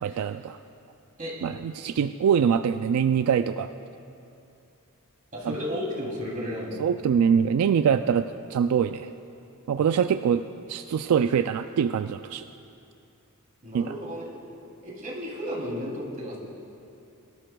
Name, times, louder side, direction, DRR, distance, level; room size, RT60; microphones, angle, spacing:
voice 1, 0.0-0.6 1.4-3.7 6.8-8.2 8.5-9.1 9.7-10.4 10.7-12.4 13.7-13.9, right 7 dB, 80° right, 9 dB, 0.3 m, -23 dB
voice 2, 5.3-6.8 13.6-14.3 14.8-16.4, equal, 40° right, -4 dB, 3.0 m, -33 dB
22.5 x 12.5 x 2.3 m, 2.7 s
head